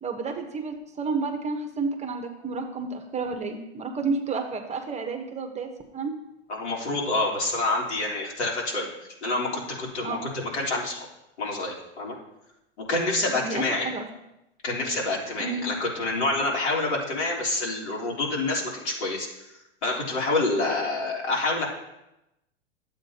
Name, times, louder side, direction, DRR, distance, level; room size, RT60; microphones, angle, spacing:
voice 1, 0.0-6.1 10.0-10.2 13.3-14.1 15.4-15.7, right 4 dB, 20° right, 4 dB, 1.1 m, -31 dB
voice 2, 6.5-8.9 9.2-11.1 11.4-12.2 12.9-13.9 14.6-19.3 19.8-21.7, left 2 dB, 75° left, -3 dB, 3.6 m, -27 dB
12.0 x 8.0 x 2.9 m, 0.90 s
hypercardioid pair, 110°, 34 cm